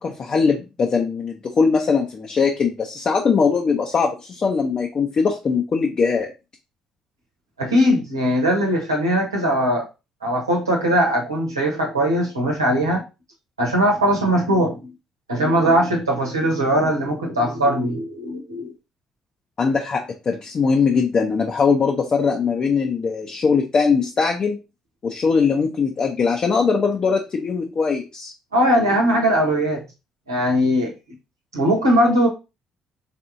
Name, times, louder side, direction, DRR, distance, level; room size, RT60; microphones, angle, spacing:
voice 1, 0.0-6.3 19.6-24.6 25.0-28.3, left 5 dB, 45° left, 1 dB, 0.7 m, -21 dB
voice 2, 7.6-9.8 10.2-13.0 13.6-14.8 15.3-18.7 28.5-29.8 30.3-30.9 31.5-32.3, equal, 90° right, -2 dB, 1.0 m, -20 dB
4.3 x 3.4 x 2.6 m, 0.27 s
figure-of-eight pair, 45°, 2 cm